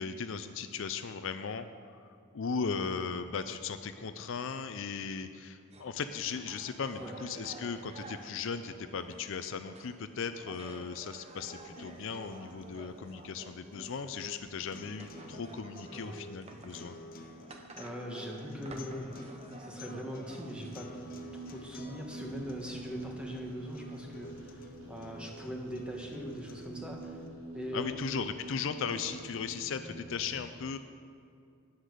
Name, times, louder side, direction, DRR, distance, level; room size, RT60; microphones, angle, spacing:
voice 1, 0.0-1.7 2.3-17.0 27.7-30.8, left 6 dB, 60° left, 9 dB, 0.5 m, -37 dB
sound 1, 5.7-23.1, right 2 dB, 30° right, 0.8 m, -52 dB
sound 2, 11.3-27.3, left 1 dB, 40° left, 0.8 m, -51 dB
voice 2, 17.8-19.1 19.6-20.9 21.3-27.2 27.5-27.9, equal, 5° right, -1 dB, 1.3 m, -41 dB
sound 3, 20.1-30.3, right 2 dB, 70° right, 3.5 m, -47 dB
9.9 x 9.6 x 6.6 m, 2.3 s
head